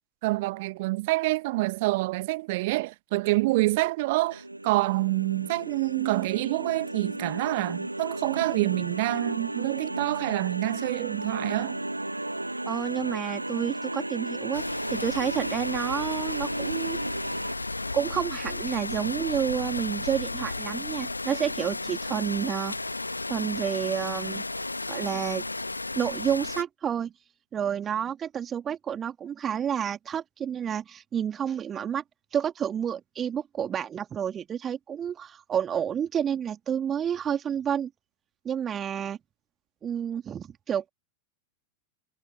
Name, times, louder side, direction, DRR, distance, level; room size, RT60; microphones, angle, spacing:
voice 1, 0.2-11.8, right 21 dB, 50° right, 1.7 m, -27 dB
sound 1, 4.2-17.6, right 1 dB, 85° right, 1.4 m, -34 dB
voice 2, 12.7-17.0 17.9-22.8 23.3-24.4 24.9-25.4 25.9-27.1 27.5-32.0 32.3-37.9 38.4-39.2 39.8-40.9, right 8 dB, 25° right, 2.6 m, -30 dB
sound 2, 14.5-26.6, left 2 dB, 80° left, 1.3 m, -34 dB
figure-of-eight pair, 90°, 0 cm